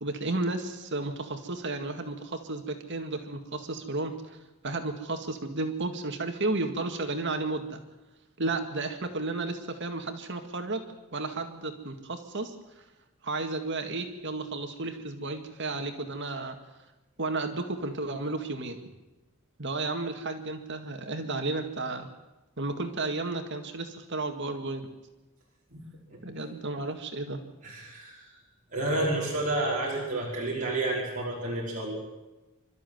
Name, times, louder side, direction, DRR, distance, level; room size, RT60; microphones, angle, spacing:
voice 1, 0.0-4.4 4.6-7.8 8.4-10.8 11.1-12.8 13.2-16.6 17.2-18.8 19.6-22.1 22.6-24.9 26.2-27.4, right 2 dB, 55° right, 5 dB, 2.0 m, -33 dB
voice 2, 27.6-28.2 28.7-32.0, right 2 dB, 40° right, -5 dB, 5.1 m, -30 dB
27.0 x 13.0 x 9.4 m, 1.1 s
head